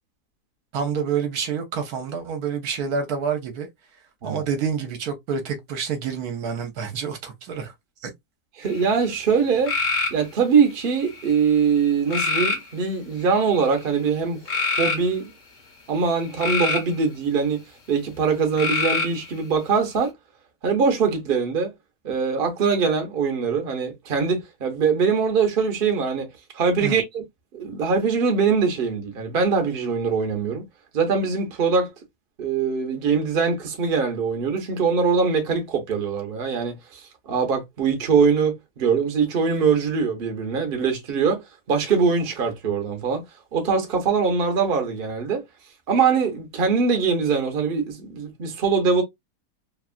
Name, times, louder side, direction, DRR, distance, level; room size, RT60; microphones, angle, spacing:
voice 1, 0.7-3.7 4.2-7.7 8.0-8.1 26.8-27.0, right 6 dB, 70° right, 1.1 m, -28 dB
voice 2, 8.6-9.7 10.1-15.3 15.9-17.6 17.9-20.1 20.6-21.7 22.0-26.3 26.5-27.2 27.5-30.6 30.9-31.9 32.4-37.0 37.3-43.2 43.5-45.4 45.9-49.0, right 5 dB, 45° right, 0.8 m, -22 dB
sound 1, 8.7-9.1 9.7-10.2 10.9-11.4 12.1-12.7 13.4-13.7 14.5-15.0 16.1-16.9 18.6-19.3, left 3 dB, 55° left, 1.2 m, -24 dB
3.0 x 2.3 x 2.4 m
omnidirectional pair, 1.8 m